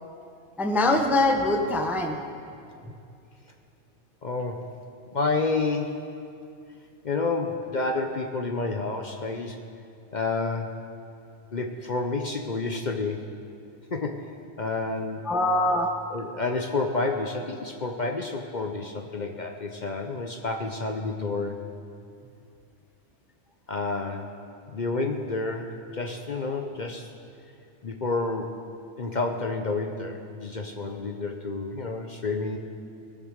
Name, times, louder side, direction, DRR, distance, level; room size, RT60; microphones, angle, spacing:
voice 1, 0.6-2.2 15.2-15.9, left 2 dB, ahead, 5 dB, 0.6 m, -23 dB
voice 2, 4.2-4.6 5.1-6.1 7.0-9.6 10.1-10.7 11.5-13.4 13.9-14.2 14.6-15.2 16.1-21.6 23.7-24.3 24.7-27.1 27.8-28.6 29.0-32.6, left 3 dB, 45° left, 4 dB, 0.8 m, -29 dB
20.5 x 7.2 x 6.4 m, 2.4 s
omnidirectional pair, 1.3 m